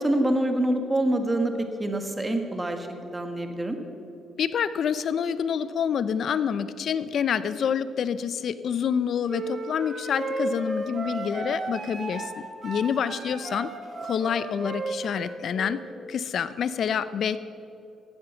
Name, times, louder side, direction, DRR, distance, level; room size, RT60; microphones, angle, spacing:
voice 1, 0.0-3.8, right 1 dB, 15° right, 6 dB, 1.6 m, -26 dB
voice 2, 4.4-13.7 14.0-15.8 16.1-17.4, left 7 dB, 60° left, 15 dB, 0.6 m, -27 dB
sound 1, 9.3-15.8, right 2 dB, 40° right, 2.1 m, -34 dB
14.5 x 8.9 x 7.1 m, 2.8 s
cardioid pair, 90°, 0 cm